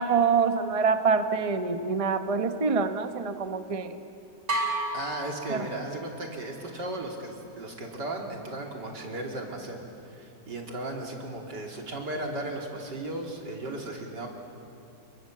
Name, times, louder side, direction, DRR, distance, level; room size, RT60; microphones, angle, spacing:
voice 1, 0.0-3.9 5.5-5.6, right 5 dB, 25° right, 8 dB, 0.9 m, -25 dB
sound 1, 4.5-6.3, right 1 dB, 45° right, 3.9 m, -32 dB
voice 2, 4.9-14.3, right 2 dB, 90° right, 1 dB, 3.7 m, -36 dB
29.5 x 22.5 x 7.7 m, 2.7 s
omnidirectional pair, 1.8 m